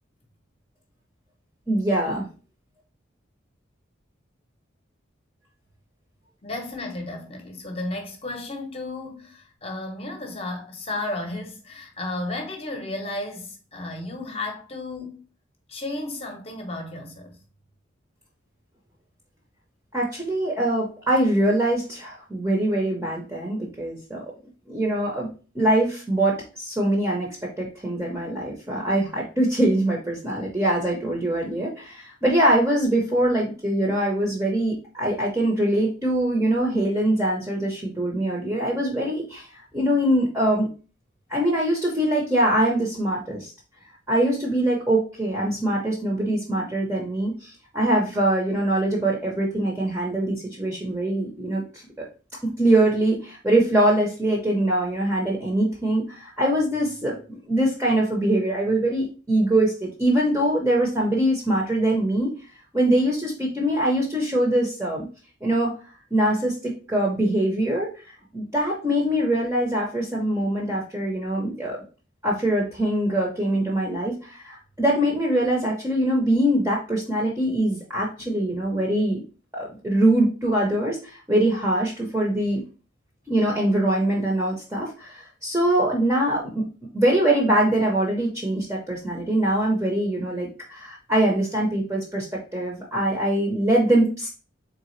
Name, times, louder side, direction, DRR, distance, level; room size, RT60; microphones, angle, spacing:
voice 1, 1.7-2.2 19.9-24.2 24.7-25.3 25.5-39.5 39.7-40.7 41.3-43.5 44.1-51.8 52.4-62.3 62.7-65.1 65.4-65.7 66.1-67.9 68.3-71.8 72.2-79.2 79.5-82.6 83.3-86.6 86.9-92.3 92.5-94.3, right 1 dB, 10° right, 0.8 m, -23 dB
voice 2, 6.4-15.2 15.7-17.4, left 2 dB, 30° left, 0.9 m, -33 dB
3.8 x 3.6 x 3.1 m
head